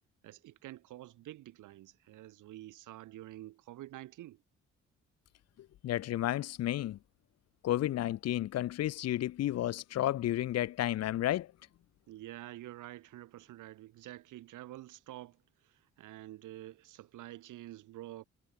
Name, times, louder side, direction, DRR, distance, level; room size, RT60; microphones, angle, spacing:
voice 1, 0.2-4.4 12.1-18.2, right 15 dB, 85° right, 2.5 m, -48 dB
voice 2, 5.8-7.0 7.6-11.5, left 13 dB, 60° left, 0.6 m, -32 dB
cardioid pair, 90°, 30 cm